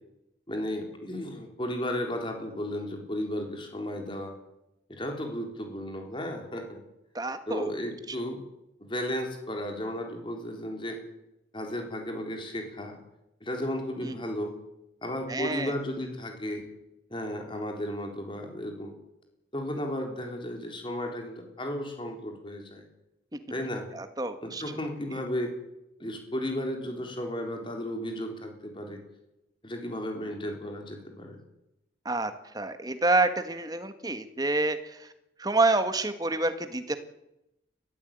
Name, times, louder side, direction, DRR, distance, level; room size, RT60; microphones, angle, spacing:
voice 1, 0.5-4.3 4.9-6.8 7.5-8.4 8.8-11.0 11.5-13.0 13.4-14.5 15.0-16.7 17.1-18.9 19.5-22.8 23.5-23.9 24.4-25.5 26.0-29.0 29.6-31.4, left 1 dB, 25° left, 3 dB, 4.1 m, -34 dB
voice 2, 7.1-7.7 8.2-8.3 14.0-14.1 15.3-15.7 23.9-24.6 25.1-25.2 32.0-35.1 35.4-37.0, right 2 dB, 20° right, 9 dB, 1.5 m, -28 dB
21.5 x 15.0 x 9.1 m, 0.89 s
head